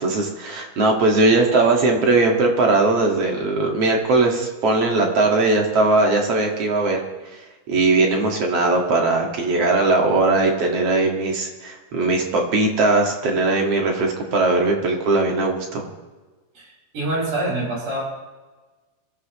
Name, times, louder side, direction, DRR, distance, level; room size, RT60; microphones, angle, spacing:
voice 1, 0.0-7.0 7.7-15.9, right 3 dB, 50° right, 1 dB, 2.7 m, -19 dB
voice 2, 16.6-18.0, right 1 dB, 65° right, -4 dB, 7.3 m, -26 dB
24.5 x 15.5 x 3.1 m, 1.3 s
omnidirectional pair, 4.1 m